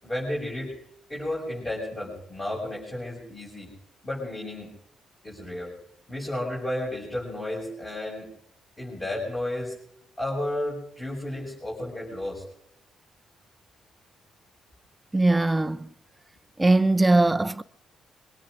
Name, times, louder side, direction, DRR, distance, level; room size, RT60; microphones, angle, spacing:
voice 1, 0.0-0.7 1.1-3.7 4.0-4.7 5.2-5.7 6.1-8.3 8.8-9.8 10.2-12.4, left 1 dB, 20° left, 6.5 m, -32 dB
voice 2, 15.1-15.9 16.6-17.6, right 2 dB, 15° right, 0.7 m, -20 dB
24.0 x 22.5 x 2.7 m
supercardioid pair, 60°, 0 cm